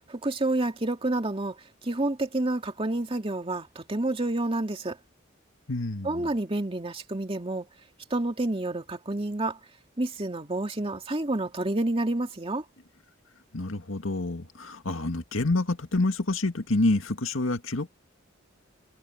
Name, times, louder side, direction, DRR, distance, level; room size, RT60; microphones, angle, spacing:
voice 1, 0.1-1.6 1.8-5.0 6.0-7.7 8.1-9.6 10.0-12.6, right 2 dB, 30° right, 2.4 m, -29 dB
voice 2, 5.7-6.3 13.5-17.9, left 2 dB, 90° left, 1.9 m, -27 dB
head